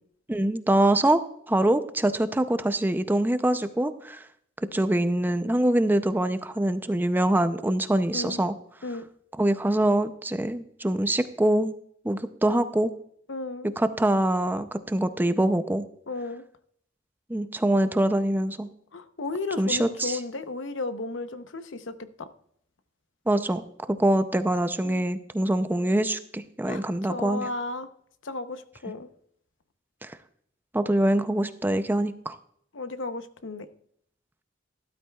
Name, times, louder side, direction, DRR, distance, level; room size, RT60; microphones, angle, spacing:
voice 1, 0.3-1.2 1.5-4.2 4.7-8.5 9.4-11.7 12.0-12.9 13.8-15.9 17.3-18.7 19.6-20.2 23.3-23.6 23.9-27.5 30.0-30.1 30.7-32.4, right 1 dB, 10° right, 10 dB, 0.5 m, -24 dB
voice 2, 8.1-8.4 8.8-9.0 13.3-13.7 16.1-16.4 18.9-22.3 24.8-25.1 26.6-26.8 27.1-27.9 28.2-29.1 32.7-33.7, left 3 dB, 75° left, 11 dB, 0.8 m, -34 dB
13.0 x 12.0 x 2.3 m, 0.67 s
head